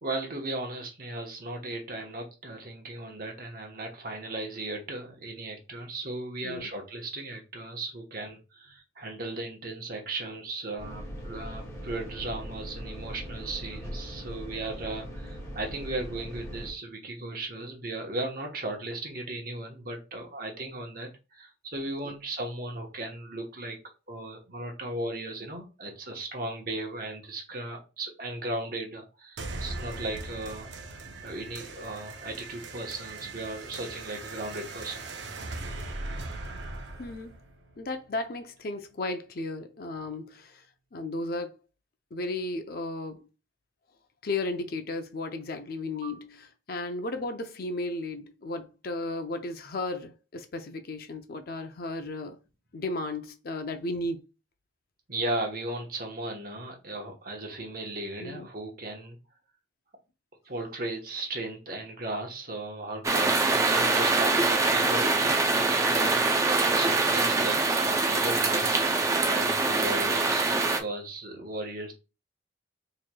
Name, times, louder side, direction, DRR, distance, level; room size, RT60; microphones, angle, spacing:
voice 1, 0.0-23.8 24.1-35.0 45.9-46.2 55.1-59.2 60.4-71.9, right 2 dB, 50° right, 1.0 m, -36 dB
sound 1, 10.8-16.7, equal, 15° left, 1.3 m, -40 dB
sound 2, 29.4-38.4, right 2 dB, 65° right, 0.6 m, -40 dB
voice 2, 37.0-37.3 37.8-40.6 40.9-41.6 42.1-43.2 44.2-52.4 52.7-54.2 58.2-58.5, left 2 dB, 50° left, 0.5 m, -34 dB
sound 3, 63.0-70.8, right 3 dB, 15° right, 0.4 m, -24 dB
4.4 x 3.0 x 2.2 m
head